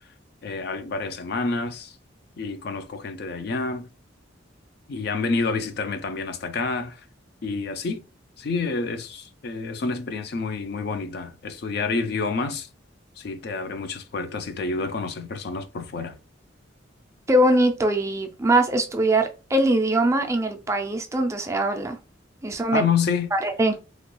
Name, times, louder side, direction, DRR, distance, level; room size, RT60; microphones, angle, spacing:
voice 1, 0.4-2.0 2.4-3.9 4.9-7.0 7.4-8.0 8.4-12.7 13.2-16.2 22.7-23.3, left 4 dB, 55° left, 0.4 m, -28 dB
voice 2, 17.3-22.0 22.4-22.8 23.3-23.7, right 1 dB, 15° right, 0.3 m, -22 dB
2.9 x 2.2 x 3.0 m
head